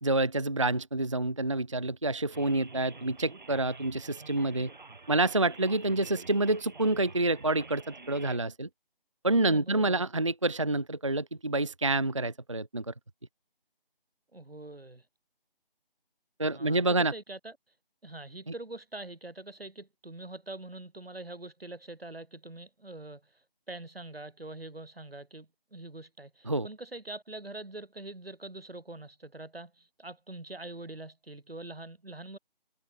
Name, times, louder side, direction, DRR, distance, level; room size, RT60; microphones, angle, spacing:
voice 1, 0.0-4.7 5.1-8.7 9.2-12.9 16.4-17.1 26.5-26.7, right 2 dB, 35° right, 0.6 m, -28 dB
sound 1, 2.3-8.4, right 3 dB, 50° right, 6.5 m, -48 dB
voice 2, 9.3-10.1 14.3-15.1 16.4-17.6 18.0-32.4, right 2 dB, 80° right, 4.5 m, -44 dB
figure-of-eight pair, 165°, 29 cm